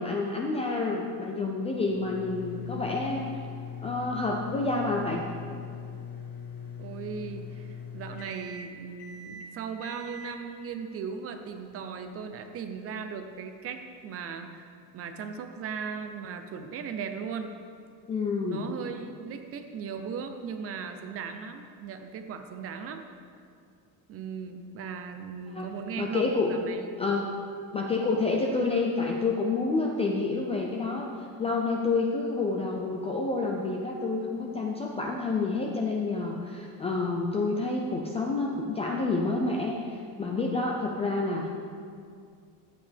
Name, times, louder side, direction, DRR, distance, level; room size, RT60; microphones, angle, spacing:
voice 1, 0.0-3.3 3.8-5.2 18.1-18.6 25.5-26.5 27.0-27.3 27.7-31.1 31.4-41.5, left 3 dB, 15° left, -1 dB, 0.3 m, -29 dB
sound 1, 1.7-12.1, left 6 dB, 65° left, 1.7 m, -41 dB
voice 2, 6.8-14.6 14.9-17.5 18.5-23.1 24.1-26.9, right 6 dB, 35° right, 7 dB, 0.6 m, -37 dB
13.0 x 8.8 x 3.4 m, 2.3 s
cardioid pair, 175°, 41 cm